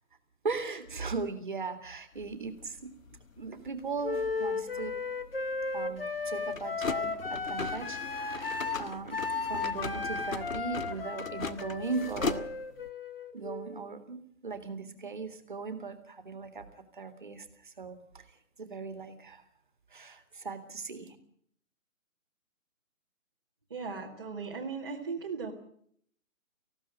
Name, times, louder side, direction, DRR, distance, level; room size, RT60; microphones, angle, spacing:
voice 1, 0.4-2.9 3.4-4.9 5.7-12.5 13.3-18.2 18.6-19.4 19.9-21.2, right 4 dB, 35° right, 9 dB, 2.2 m, -38 dB
sound 1, 2.1-12.9, left 4 dB, 75° left, 1.6 m, -40 dB
Wind instrument woodwind instrument, 4.0-13.8, left 4 dB, 45° left, 1.6 m, -35 dB
voice 2, 23.7-25.5, right 5 dB, 20° right, -5 dB, 1.6 m, -37 dB
19.0 x 15.5 x 8.8 m, 0.63 s
hypercardioid pair, 180°, 41 cm